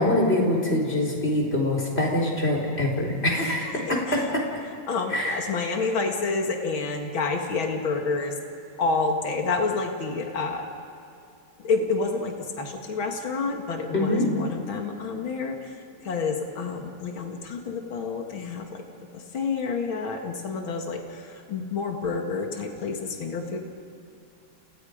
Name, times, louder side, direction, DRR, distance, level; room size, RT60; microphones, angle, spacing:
voice 1, 0.0-4.4 5.1-5.4 13.9-14.3, left 1 dB, 30° left, -1 dB, 4.5 m, -24 dB
voice 2, 3.4-4.3 4.9-8.3 8.8-10.7 11.6-18.8 19.1-23.6, left 4 dB, 75° left, 3 dB, 2.8 m, -29 dB
30.0 x 30.0 x 5.2 m, 2.6 s
omnidirectional pair, 2.2 m